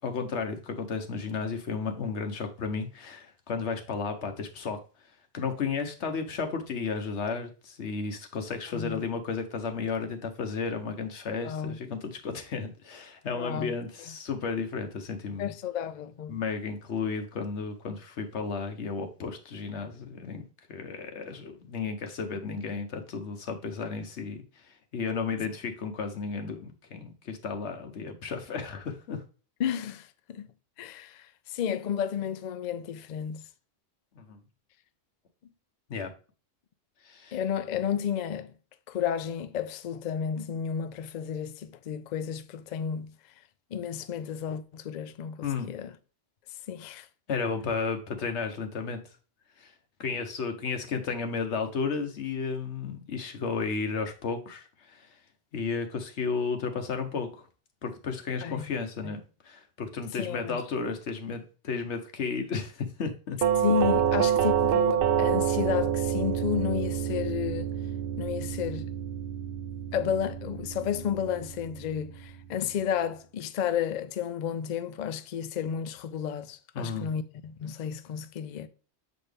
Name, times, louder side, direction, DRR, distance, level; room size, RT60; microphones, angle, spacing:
voice 1, 0.0-4.8 5.3-15.5 16.3-20.4 20.7-29.2 34.1-34.4 35.9-36.1 37.0-37.4 45.4-45.7 47.3-49.0 49.6-49.7 50.0-55.2 55.5-57.5 57.8-63.4 76.7-77.1, left 5 dB, 85° left, 1.2 m, -33 dB
voice 2, 11.4-11.8 13.3-13.7 15.4-16.4 29.6-30.5 30.8-33.4 37.3-38.5 38.9-43.1 43.7-45.9 46.7-47.1 58.4-58.7 59.0-59.1 60.2-60.6 63.6-67.7 68.2-68.9 69.9-78.7, left 8 dB, 55° left, 0.5 m, -32 dB
Doorbell, 63.4-72.2, right 9 dB, 60° right, 0.8 m, -28 dB
7.0 x 4.2 x 3.4 m
omnidirectional pair, 1.1 m